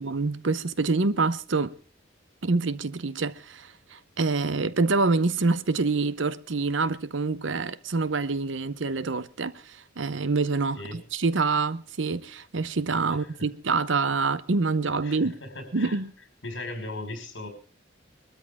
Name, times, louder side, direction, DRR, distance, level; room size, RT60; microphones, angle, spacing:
voice 1, 0.0-1.7 2.4-15.3 15.7-16.1, right 3 dB, 75° right, 0.8 m, -26 dB
voice 2, 15.0-16.0 16.4-17.5, left 2 dB, 70° left, 5.2 m, -38 dB
21.5 x 13.0 x 3.6 m
head